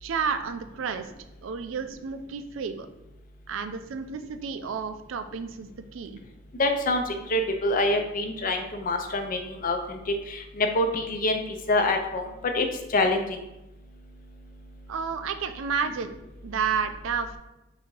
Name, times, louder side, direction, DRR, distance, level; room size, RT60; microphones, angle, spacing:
voice 1, 0.0-1.1 1.4-2.9 3.5-6.2 14.9-17.4, right 6 dB, 80° right, 9 dB, 0.4 m, -31 dB
voice 2, 6.6-10.0 10.6-11.4 11.7-12.3 12.5-12.7 12.9-13.4, left 2 dB, 45° left, 5 dB, 0.5 m, -25 dB
3.8 x 2.7 x 4.5 m, 0.94 s
head